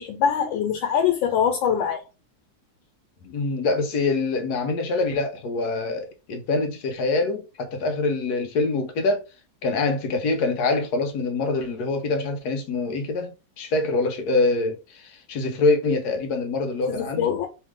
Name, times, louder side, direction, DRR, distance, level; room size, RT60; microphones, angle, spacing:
voice 1, 0.0-2.0 16.9-17.5, left 8 dB, 90° left, 1.5 m, -23 dB
voice 2, 3.2-9.2 9.6-17.4, left 3 dB, 65° left, 1.2 m, -25 dB
3.2 x 3.2 x 3.6 m
omnidirectional pair, 2.0 m